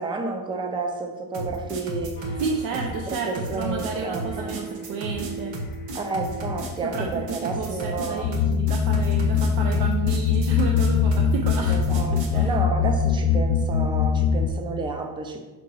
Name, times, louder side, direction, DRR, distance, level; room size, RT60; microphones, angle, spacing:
voice 1, 0.0-2.4 3.1-4.6 5.9-8.3 11.6-15.4, right 3 dB, 10° right, 4 dB, 0.4 m, -31 dB
sound 1, 1.3-12.4, right 1 dB, 90° right, 1.4 m, -33 dB
sound 2, 2.2-7.9, right 1 dB, 25° left, 0.7 m, -41 dB
voice 2, 2.4-5.6 6.8-12.5, right 5 dB, 60° right, 2 dB, 0.7 m, -31 dB
sound 3, 8.2-14.5, left 6 dB, 80° left, 0.7 m, -22 dB
6.0 x 3.9 x 4.7 m, 1.2 s
cardioid pair, 155°, 41 cm